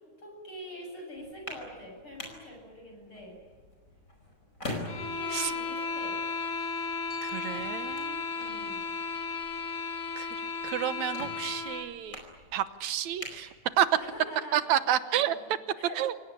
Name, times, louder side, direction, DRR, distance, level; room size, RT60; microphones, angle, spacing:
voice 1, 0.0-3.4 4.9-6.2 8.3-8.9 13.9-16.0, equal, 40° left, 1 dB, 8.6 m, -45 dB
sound 1, 1.2-14.2, left 1 dB, 25° left, 5.1 m, -46 dB
sound 2, 4.9-11.9, left 4 dB, 70° left, 4.1 m, -34 dB
Glockenspiel, 7.1-11.2, right 1 dB, 20° right, 6.5 m, -58 dB
voice 2, 7.2-8.3 10.2-10.3 10.6-12.2 12.5-13.5 13.8-14.0 14.5-15.4 16.0-16.1, right 11 dB, 70° right, 13 dB, 2.2 m, -29 dB
27.5 x 17.0 x 10.0 m, 1.5 s
omnidirectional pair, 3.5 m